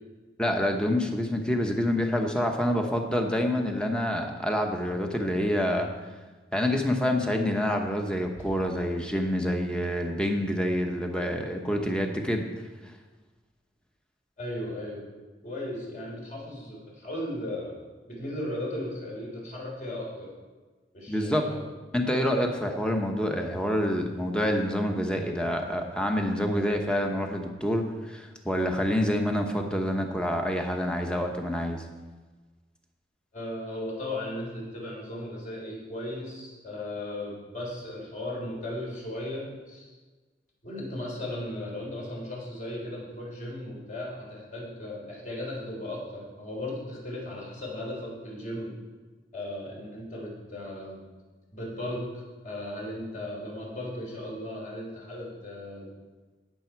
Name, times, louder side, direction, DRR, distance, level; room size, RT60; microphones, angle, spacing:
voice 1, 0.4-5.9 6.5-12.4 21.1-21.4 21.9-31.8, equal, 5° left, 3 dB, 1.1 m, -27 dB
voice 2, 14.4-15.0 15.4-17.8 18.1-20.3 20.9-21.6 33.3-39.9 40.6-48.7 49.3-51.0 51.5-55.9, left 1 dB, 45° left, -4 dB, 3.9 m, -36 dB
18.5 x 6.9 x 4.6 m, 1.3 s
head